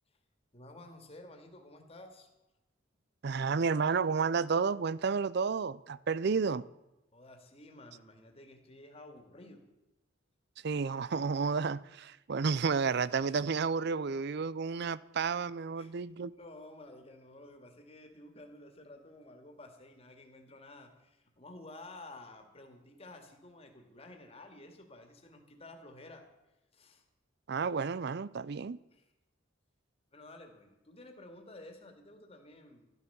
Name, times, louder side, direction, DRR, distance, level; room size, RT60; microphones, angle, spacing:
voice 1, 0.5-2.3 7.1-9.6 15.8-26.3 26.7-27.0 28.9-29.0 30.1-32.9, left 2 dB, 30° left, 2.1 m, -52 dB
voice 2, 3.2-6.6 10.6-16.3 27.5-28.8, right 5 dB, 55° right, 0.5 m, -31 dB
12.5 x 12.0 x 6.9 m
head